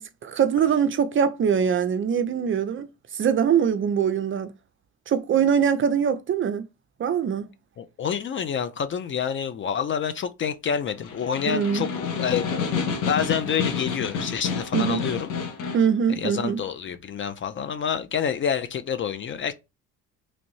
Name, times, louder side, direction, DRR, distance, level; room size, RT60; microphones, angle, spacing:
voice 1, 0.0-2.9 3.1-4.5 5.1-6.7 7.0-7.5 11.4-11.9 14.7-15.0 15.7-16.6, right 7 dB, 35° right, 0.4 m, -23 dB
voice 2, 7.8-12.4 13.1-15.3 16.1-19.5, left 7 dB, 35° left, 0.4 m, -28 dB
Snare drum, 10.9-15.9, left 5 dB, 60° left, 0.9 m, -29 dB
3.1 x 2.5 x 3.0 m
hypercardioid pair, 55°, 36 cm